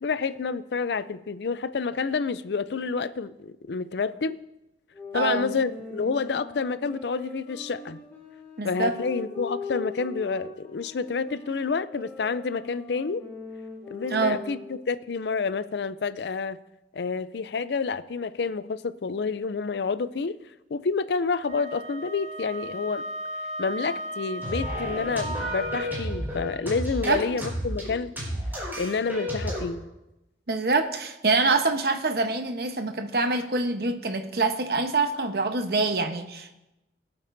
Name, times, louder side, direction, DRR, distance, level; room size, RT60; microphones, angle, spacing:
voice 1, 0.0-4.4 5.1-8.0 8.6-13.3 13.9-16.6 16.9-20.4 20.7-23.1 23.6-28.1 28.8-29.8, left 4 dB, 75° left, 15 dB, 0.5 m, -29 dB
sound 1, 4.9-14.9, left 3 dB, 10° left, 3.0 m, -41 dB
voice 2, 5.1-5.5 8.6-8.9 14.1-14.4 27.1-27.2 30.5-36.5, right 3 dB, 60° right, 6 dB, 1.0 m, -25 dB
Wind instrument woodwind instrument, 21.5-26.0, equal, 40° right, 0.6 m, -36 dB
sound 2, 24.4-29.6, equal, 10° right, 4.7 m, -31 dB
21.5 x 8.6 x 2.7 m, 0.94 s
head